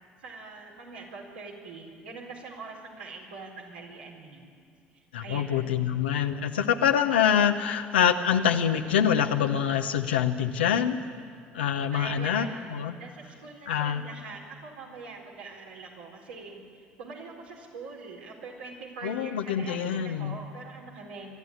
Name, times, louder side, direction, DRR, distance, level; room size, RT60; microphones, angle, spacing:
voice 1, 0.2-4.5 5.2-5.9 11.6-21.3, right 4 dB, 85° right, -2 dB, 4.2 m, -43 dB
voice 2, 5.1-11.0 11.5-12.9 13.7-14.0 19.0-20.4, left 8 dB, 85° left, 5 dB, 1.0 m, -25 dB
25.0 x 12.5 x 9.8 m, 2.2 s
hypercardioid pair, 60°, 5 cm